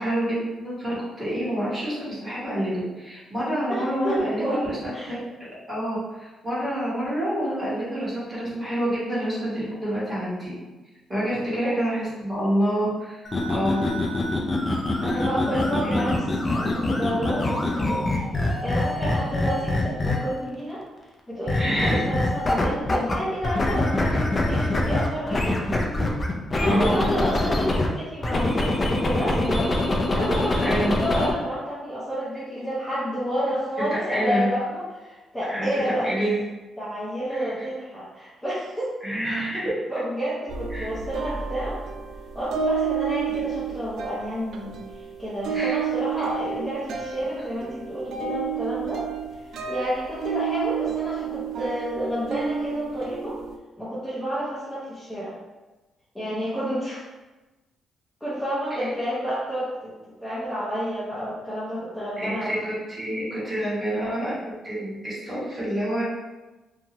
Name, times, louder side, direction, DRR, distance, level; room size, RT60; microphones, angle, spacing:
voice 1, 0.0-5.2 5.7-10.6 11.1-13.2 13.5-13.9 15.1-16.1 21.5-22.1 24.0-24.2 26.6-26.9 30.6-30.9 34.1-34.5 35.5-36.4 37.3-37.5 39.0-39.7 40.7-40.9 45.5-45.7 62.2-66.0, equal, 15° right, -9 dB, 1.3 m, -27 dB
voice 2, 3.7-5.1 11.4-11.7 15.0-16.2 16.5-18.1 18.4-20.8 21.3-25.4 26.5-29.7 30.1-36.1 36.8-38.9 39.6-41.8 42.3-49.0 49.4-53.4 53.8-55.4 56.1-57.1 58.2-59.9 60.2-62.6, equal, 5° left, -10 dB, 0.7 m, -30 dB
sound 1, 13.2-20.4 21.5-23.1 23.4-27.9 28.2-31.3, left 2 dB, 25° left, 0.4 m, -24 dB
sound 2, 40.5-53.6, right 6 dB, 75° right, 0.3 m, -30 dB
2.6 x 2.3 x 2.9 m, 1.1 s
cardioid pair, 120°, 0 cm